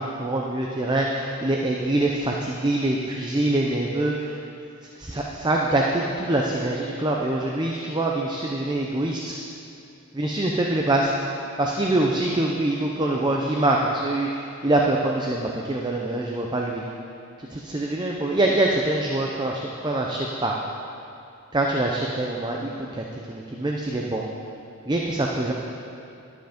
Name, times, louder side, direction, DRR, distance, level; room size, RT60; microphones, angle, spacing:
voice 1, 0.0-4.4 5.0-9.4 10.1-11.1 11.6-16.8 17.4-20.5 21.5-24.3 24.9-25.5, right 2 dB, 20° right, -1 dB, 0.5 m, -24 dB
11.5 x 7.9 x 5.1 m, 2.7 s
head